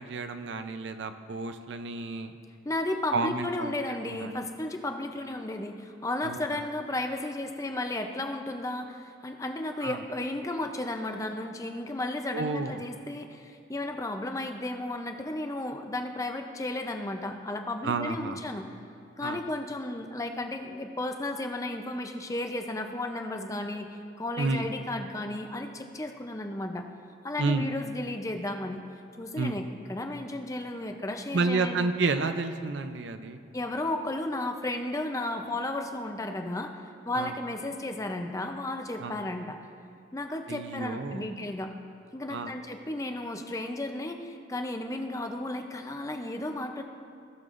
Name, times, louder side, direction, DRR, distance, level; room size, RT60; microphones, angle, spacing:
voice 1, 0.0-2.3 3.1-3.7 4.1-4.5 6.2-6.6 9.8-10.0 12.3-12.8 17.8-18.4 19.2-19.4 24.4-24.7 27.4-27.7 29.4-29.6 31.3-33.4 37.1-37.4 39.0-39.2 40.5-41.3 42.3-42.5, right 3 dB, 70° right, 9 dB, 0.5 m, -30 dB
voice 2, 2.6-18.7 19.2-26.9 27.2-28.9 29.2-31.9 33.5-39.6 40.1-41.7 42.1-46.8, left 2 dB, 15° left, 5 dB, 0.5 m, -34 dB
17.5 x 6.8 x 2.5 m, 2.4 s
head